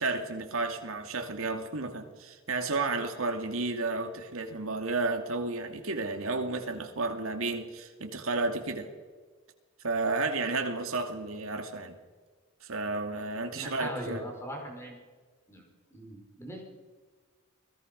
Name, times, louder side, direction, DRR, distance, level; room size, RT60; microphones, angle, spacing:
voice 1, 0.0-8.9 9.8-12.0 12.6-14.2, right 3 dB, 75° right, 2.5 m, -32 dB
voice 2, 13.5-15.0 15.5-15.6 15.9-16.6, equal, 10° left, 5.2 m, -40 dB
28.5 x 20.0 x 5.4 m
head